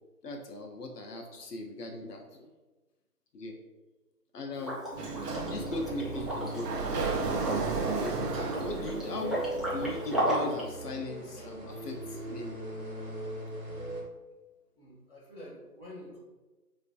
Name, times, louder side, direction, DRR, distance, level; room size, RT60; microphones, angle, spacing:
voice 1, 0.2-2.5 3.3-3.6 4.3-4.8 5.4-6.8 7.9-8.2 8.6-12.6, left 2 dB, 80° left, 2 dB, 0.5 m, -39 dB
Liquid, 4.5-10.7, equal, ahead, 0.3 m, -35 dB
Sliding door, 4.9-9.9, right 4 dB, 80° right, 0.5 m, -34 dB
sound 1, 5.2-14.0, right 1 dB, 60° right, 1.0 m, -40 dB
voice 2, 14.7-16.2, left 1 dB, 40° left, -6 dB, 0.7 m, -48 dB
2.4 x 2.4 x 2.3 m, 1.2 s
figure-of-eight pair, 155°, 47 cm